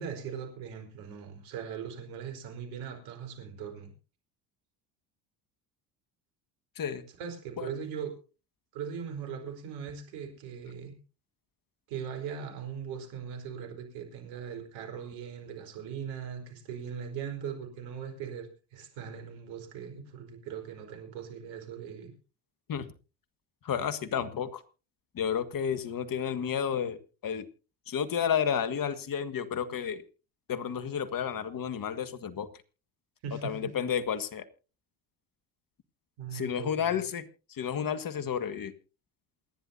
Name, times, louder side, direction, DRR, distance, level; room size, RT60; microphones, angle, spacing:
voice 1, 0.0-3.9 7.2-8.1 8.7-10.9 11.9-22.1 33.2-33.7 36.2-37.0, right 7 dB, 70° right, 4 dB, 4.7 m, -40 dB
voice 2, 23.6-24.6 25.1-27.5 27.9-30.0 30.5-32.5 33.4-34.4 36.3-37.2 37.5-38.7, left 8 dB, 45° left, 12 dB, 1.9 m, -31 dB
28.0 x 10.5 x 2.8 m, 0.34 s
hypercardioid pair, 70°, 48 cm